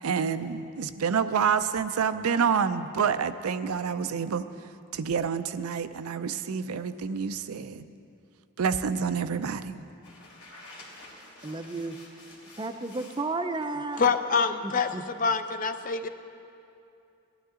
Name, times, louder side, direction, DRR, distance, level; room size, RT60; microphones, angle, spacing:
voice 1, 0.0-4.5 4.9-7.8 8.6-9.9, right 6 dB, 85° right, 11 dB, 0.5 m, -28 dB
sound 1, 10.0-13.2 13.6-14.1, left 2 dB, 85° left, 3.0 m, -50 dB
voice 2, 11.1-12.0 12.4-14.0 14.6-15.0, right 3 dB, 20° right, 8 dB, 0.4 m, -33 dB
voice 3, 14.0-14.9 15.2-16.1, left 5 dB, 35° left, 9 dB, 0.4 m, -25 dB
17.5 x 11.5 x 3.7 m, 2.6 s
head